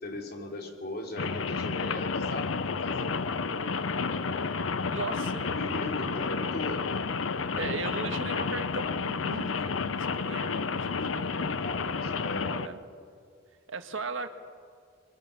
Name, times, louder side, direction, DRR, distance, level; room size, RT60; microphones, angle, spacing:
voice 1, 0.0-4.5 5.4-7.1 11.0-12.7, left 1 dB, 55° left, 2 dB, 3.6 m, -39 dB
Rain, 1.2-12.7, left 4 dB, 80° left, 0.7 m, -31 dB
voice 2, 4.9-5.4 7.5-11.6 12.6-12.8 13.7-14.3, right 3 dB, 75° right, 7 dB, 1.7 m, -37 dB
29.5 x 23.0 x 6.9 m, 2.2 s
head